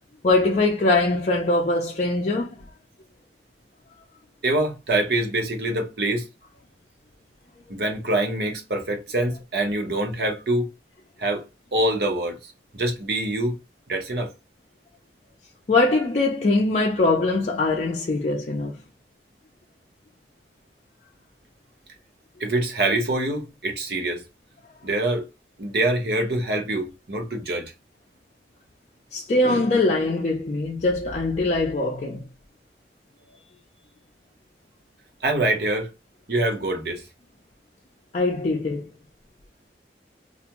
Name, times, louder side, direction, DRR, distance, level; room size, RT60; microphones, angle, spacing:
voice 1, 0.2-2.6 15.7-18.8 29.1-32.2 38.1-38.9, left 2 dB, 40° left, 0.4 m, -22 dB
voice 2, 4.4-6.3 7.7-10.7 11.2-11.4 11.7-13.5 13.9-14.3 22.4-24.2 24.8-25.3 25.6-27.7 35.2-35.9 36.3-37.0, right 1 dB, 65° right, 0.9 m, -25 dB
2.4 x 2.2 x 2.8 m
head